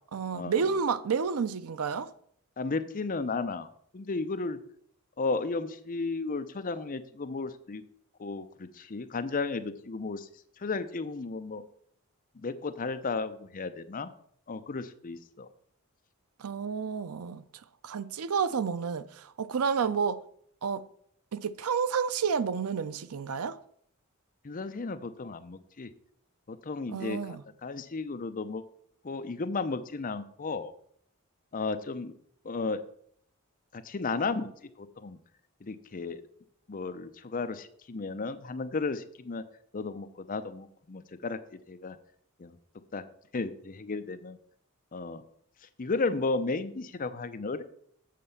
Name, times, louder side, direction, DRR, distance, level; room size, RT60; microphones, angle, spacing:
voice 1, 0.1-2.1 16.4-17.4 17.8-20.2 20.6-20.9 21.3-23.6 26.9-27.4, right 6 dB, 85° right, 0.5 m, -30 dB
voice 2, 2.6-3.7 3.9-4.6 5.2-7.8 8.2-10.3 10.6-11.6 12.4-14.1 14.5-15.5 24.4-25.9 26.5-28.6 29.0-30.7 31.5-32.1 32.4-32.8 33.7-34.5 34.8-35.2 35.6-36.2 36.7-39.4 39.7-41.4 41.7-42.0 42.4-42.6 42.9-43.0 43.3-44.4 44.9-45.2 45.8-47.6, left 3 dB, 40° left, 0.6 m, -34 dB
7.6 x 4.3 x 6.8 m
head